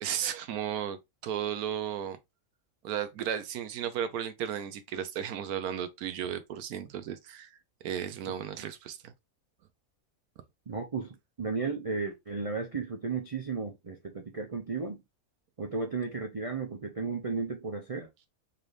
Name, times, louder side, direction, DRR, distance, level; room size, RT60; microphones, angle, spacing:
voice 1, 0.0-2.2 2.8-7.5 7.8-9.1, right 9 dB, 85° right, 1.2 m, -34 dB
voice 2, 10.7-15.0 15.6-18.3, right 4 dB, 65° right, 0.3 m, -34 dB
4.1 x 3.3 x 2.5 m
omnidirectional pair, 1.5 m